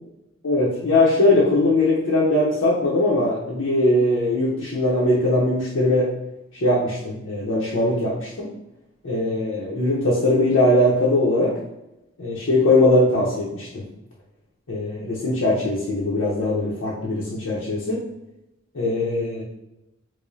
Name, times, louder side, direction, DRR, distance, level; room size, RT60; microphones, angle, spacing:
voice 1, 0.4-6.1 6.6-8.5 9.0-11.5 12.2-13.8 14.7-18.0 18.7-19.4, left 1 dB, 80° left, -7 dB, 0.7 m, -20 dB
4.8 x 2.1 x 2.6 m, 0.90 s
head